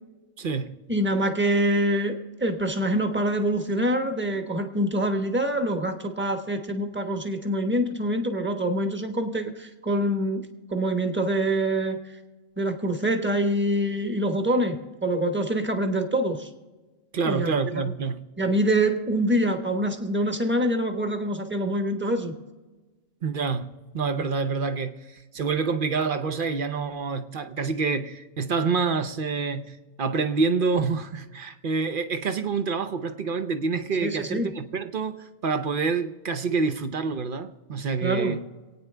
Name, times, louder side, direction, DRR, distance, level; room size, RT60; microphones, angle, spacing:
voice 1, 0.4-0.8 17.1-18.2 23.2-38.4, right 4 dB, 45° right, 0.7 m, -27 dB
voice 2, 0.9-12.0 12.6-16.5 17.2-17.5 18.4-22.3 34.0-34.5 38.0-38.4, right 1 dB, 10° right, 1.0 m, -25 dB
27.5 x 9.3 x 3.4 m
omnidirectional pair, 1.6 m